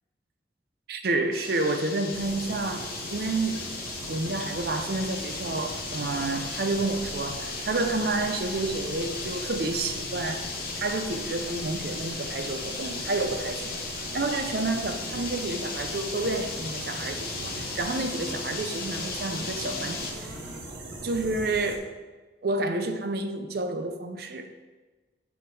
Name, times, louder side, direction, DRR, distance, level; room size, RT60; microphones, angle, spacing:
voice 1, 0.9-3.7 4.1-10.5 10.7-13.8 14.1-20.3 21.0-21.9 22.4-24.5, right 2 dB, 55° right, 0.6 m, -30 dB
sound 1, 1.3-20.1, left 4 dB, 50° left, 1.1 m, -36 dB
sound 2, 2.1-21.8, right 1 dB, 85° right, 1.1 m, -41 dB
sound 3, 12.1-20.6, equal, 20° right, 2.0 m, -48 dB
6.3 x 5.1 x 4.7 m
head